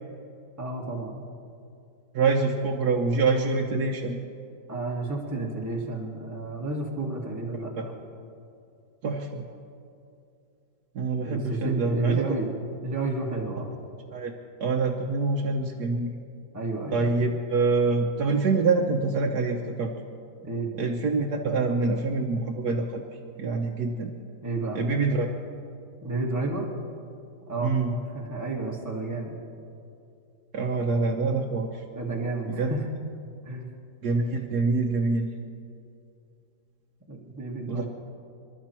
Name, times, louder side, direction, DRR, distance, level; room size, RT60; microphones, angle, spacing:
voice 1, 0.6-1.2 4.7-7.9 11.2-12.5 12.8-13.7 16.5-17.3 20.4-20.7 24.4-24.8 26.0-26.7 27.5-29.4 31.9-32.8 33.4-33.7 37.1-37.9, right 3 dB, 10° right, -2 dB, 1.7 m, -31 dB
voice 2, 2.1-4.2 9.0-9.4 10.9-12.2 14.1-14.3 14.6-16.1 16.9-19.9 20.7-23.0 23.4-24.1 24.7-25.3 27.6-27.9 30.5-31.7 32.6-32.7 34.0-35.3 37.7-37.9, right 3 dB, 70° right, 0 dB, 1.5 m, -25 dB
26.5 x 12.0 x 4.5 m, 2.5 s
omnidirectional pair, 1.8 m